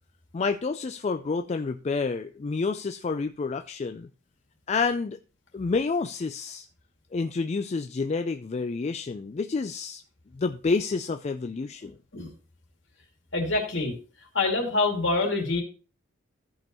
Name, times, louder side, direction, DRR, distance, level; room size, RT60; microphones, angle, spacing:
voice 1, 0.3-4.1 4.7-5.2 5.5-6.7 7.1-10.0 10.4-11.9, left 4 dB, 30° left, 0.3 m, -29 dB
voice 2, 13.3-13.9 14.3-15.6, left 3 dB, 60° left, 2.5 m, -25 dB
14.5 x 5.3 x 3.0 m
head